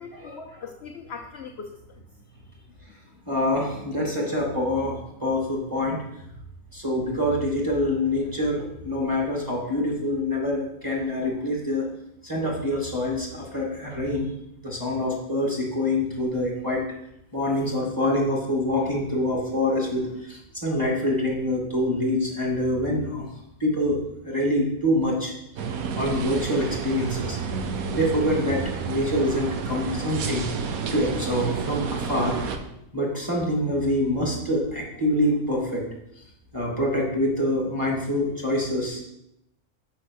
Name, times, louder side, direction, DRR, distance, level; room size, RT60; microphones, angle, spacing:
voice 1, 0.0-2.0 2.5-2.7, left 5 dB, 55° left, 4 dB, 0.8 m, -40 dB
voice 2, 3.3-6.0 6.7-11.9 12.2-14.3 14.6-16.8 17.3-23.2 23.6-25.3 25.9-27.4 27.9-30.4 30.9-32.4 32.9-35.9 36.5-39.0, left 1 dB, 15° right, -3 dB, 2.3 m, -25 dB
sound 1, 25.6-32.6, right 5 dB, 70° right, 1.2 m, -30 dB
6.5 x 5.9 x 6.3 m, 0.82 s
omnidirectional pair, 1.6 m